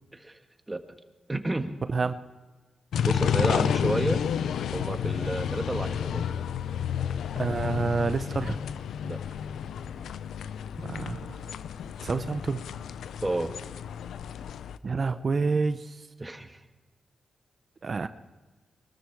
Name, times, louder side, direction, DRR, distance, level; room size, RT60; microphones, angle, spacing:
voice 1, 1.3-1.7 3.0-4.2 4.7-6.2 9.0-9.2 13.2-13.5 16.2-16.6, right 2 dB, 20° right, 7 dB, 1.5 m, -30 dB
sound 1, 2.9-14.8, left 8 dB, 85° left, 0.5 m, -31 dB
voice 2, 7.4-8.6 10.8-11.4 12.0-12.6 14.8-16.1 17.8-18.1, right 4 dB, 45° right, 11 dB, 0.8 m, -28 dB
23.0 x 13.0 x 4.8 m, 1.3 s
cardioid pair, 60°, 0 cm